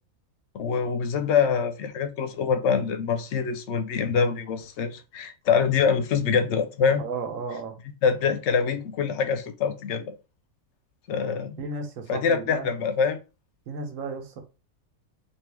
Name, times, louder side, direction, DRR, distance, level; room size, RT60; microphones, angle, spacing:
voice 1, 0.5-7.0 8.0-10.2 11.1-11.6 12.1-13.2, left 6 dB, 65° left, 0.8 m, -25 dB
voice 2, 7.0-7.7 11.6-12.7 13.7-14.4, right 4 dB, 70° right, 1.2 m, -34 dB
3.6 x 2.7 x 3.3 m
omnidirectional pair, 1.5 m